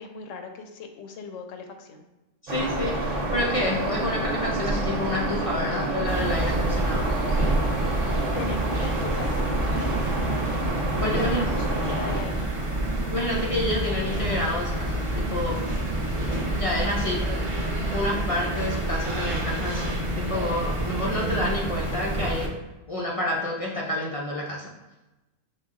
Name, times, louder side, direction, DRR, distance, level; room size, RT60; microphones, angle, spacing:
voice 1, 0.0-2.0 8.3-10.4 11.0-12.5 16.5-17.2, left 4 dB, 85° left, 5 dB, 0.9 m, -38 dB
voice 2, 2.4-7.2 10.9-11.5 13.1-15.6 16.5-17.2 17.5-22.6 22.9-24.7, left 1 dB, 60° left, -3 dB, 0.3 m, -29 dB
sound 1, 2.5-12.2, right 1 dB, 80° right, 1.1 m, -28 dB
sound 2, 6.1-22.5, right 1 dB, 40° right, 0.5 m, -28 dB
5.6 x 2.1 x 3.6 m, 1.1 s
omnidirectional pair, 1.3 m